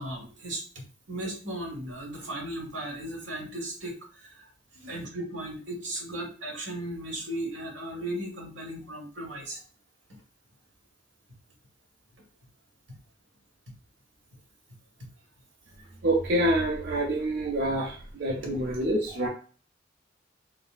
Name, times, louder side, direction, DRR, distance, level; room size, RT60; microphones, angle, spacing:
voice 1, 0.0-9.6 12.9-13.0 19.1-19.2, right 1 dB, 85° right, -1 dB, 1.4 m, -36 dB
voice 2, 16.0-19.3, right 1 dB, 60° right, -2 dB, 0.5 m, -27 dB
4.0 x 2.0 x 2.4 m, 0.39 s
head